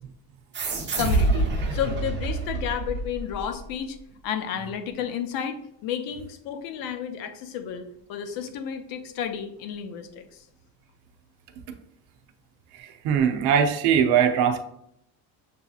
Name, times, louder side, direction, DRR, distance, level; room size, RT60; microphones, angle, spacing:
sound 1, 0.5-3.6, right 2 dB, 30° right, 0.7 m, -26 dB
voice 1, 1.0-4.0 4.2-7.8 8.1-10.4, left 8 dB, 55° left, 8 dB, 0.6 m, -32 dB
voice 2, 12.7-14.6, right 8 dB, 70° right, 5 dB, 0.7 m, -21 dB
6.7 x 2.8 x 2.4 m, 0.73 s
cardioid pair, 160°, 40 cm